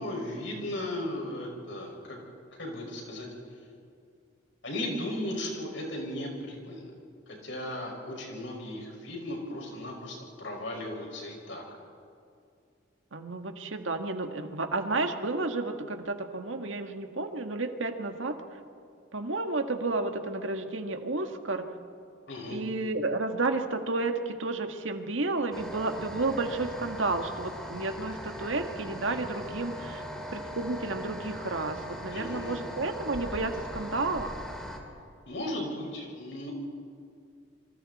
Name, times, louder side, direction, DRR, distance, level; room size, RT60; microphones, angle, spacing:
voice 1, 0.0-2.2 2.6-3.3 4.6-6.8 7.3-11.6 22.3-22.6 32.1-32.6 35.3-36.5, left 1 dB, 70° left, 0 dB, 5.8 m, -36 dB
voice 2, 13.1-18.4 19.1-21.7 22.5-30.0 30.3-34.3, right 3 dB, 90° right, 6 dB, 1.7 m, -31 dB
sound 1, 25.5-34.8, equal, 5° left, 2.5 m, -40 dB
28.5 x 24.5 x 4.2 m, 2.3 s
head